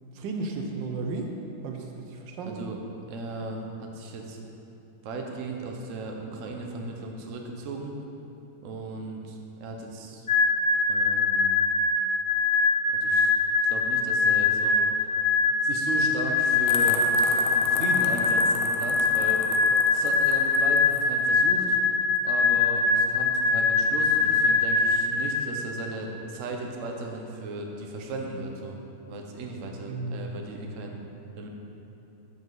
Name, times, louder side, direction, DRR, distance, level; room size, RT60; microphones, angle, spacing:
voice 1, 0.1-1.3 1.6-2.6 29.9-30.3, right 3 dB, 85° right, 2 dB, 1.5 m, -34 dB
voice 2, 2.5-2.8 3.1-4.4 5.0-7.9 8.6-10.3 10.9-11.6 12.9-13.3 13.6-15.2 15.6-17.0 17.5-21.8 22.2-28.8 29.1-31.0 31.3-31.5, right 2 dB, 55° right, 1 dB, 1.1 m, -36 dB
sound 1, 10.3-25.9, left 4 dB, 30° left, 0.9 m, -23 dB
sound 2, 16.7-21.1, left 6 dB, 85° left, 1.4 m, -37 dB
13.5 x 5.5 x 3.9 m, 2.9 s
omnidirectional pair, 1.9 m